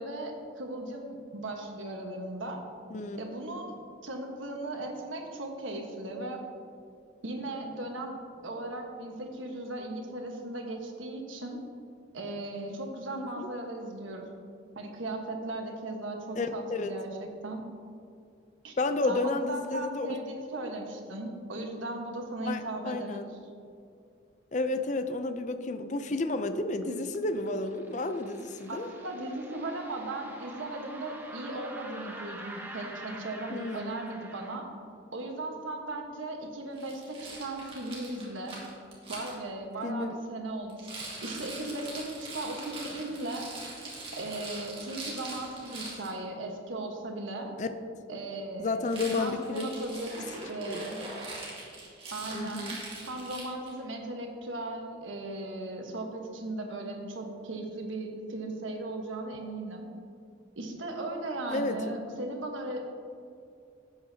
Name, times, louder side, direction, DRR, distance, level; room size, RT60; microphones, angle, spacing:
voice 1, 0.0-2.6 3.2-6.4 7.2-11.6 12.1-14.3 14.7-17.6 18.6-18.7 19.0-23.3 28.7-34.7 35.1-38.6 39.1-40.9 41.2-43.5 44.1-47.5 48.1-48.8 49.1-51.0 52.1-52.7 53.0-59.9 60.6-62.8, right 2 dB, 90° right, 2 dB, 1.3 m, -37 dB
voice 2, 13.2-13.5 16.4-16.9 18.8-20.2 22.4-23.3 24.5-28.9 33.5-34.0 39.8-40.2 47.6-47.7 48.6-49.7 50.7-50.9 52.3-52.8 61.5-61.8, left 2 dB, 40° left, 8 dB, 0.5 m, -31 dB
sound 1, 26.8-34.5, right 1 dB, 10° right, 0.7 m, -46 dB
Rattle, 36.8-39.3 40.7-46.1 48.8-53.8, right 2 dB, 30° right, 2.0 m, -42 dB
12.0 x 8.0 x 2.8 m, 2.5 s
head